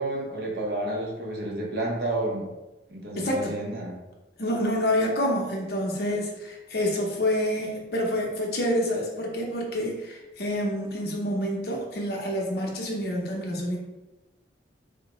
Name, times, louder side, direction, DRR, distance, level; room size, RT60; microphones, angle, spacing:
voice 1, 0.0-2.5 2.9-3.9, right 2 dB, 60° right, -2 dB, 0.7 m, -30 dB
voice 2, 3.1-3.5 4.4-13.8, equal, 55° left, 0 dB, 0.6 m, -27 dB
3.5 x 2.1 x 2.9 m, 1.0 s
head